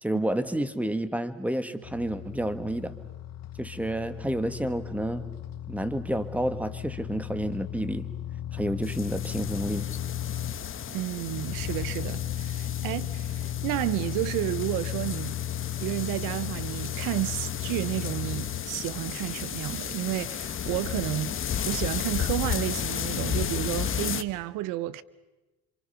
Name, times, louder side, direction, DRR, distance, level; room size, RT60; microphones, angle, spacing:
voice 1, 0.0-2.9 3.6-5.2 5.7-8.1 8.5-9.9, right 1 dB, 5° right, 1.8 m, -30 dB
sound 1, 1.8-10.9 11.3-18.6, left 11 dB, 55° left, 1.2 m, -35 dB
sound 2, 8.8-24.2, left 8 dB, 40° left, 1.3 m, -34 dB
voice 2, 10.9-15.4 15.8-25.0, right 16 dB, 85° right, 0.9 m, -31 dB
28.0 x 26.0 x 5.8 m
supercardioid pair, 90°, 31 cm